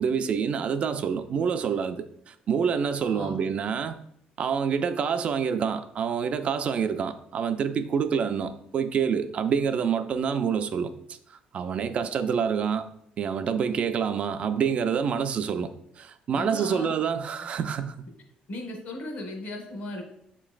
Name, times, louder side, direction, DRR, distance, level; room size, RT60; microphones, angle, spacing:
voice 1, 0.0-4.0 4.4-10.9 11.5-12.9 13.2-15.7 16.0-18.0, right 7 dB, 45° right, 0.3 m, -27 dB
voice 2, 3.0-3.4 16.3-16.9 18.5-20.0, left 2 dB, 60° left, 1.1 m, -37 dB
6.8 x 3.0 x 2.4 m
cardioid pair, 135°, 3 cm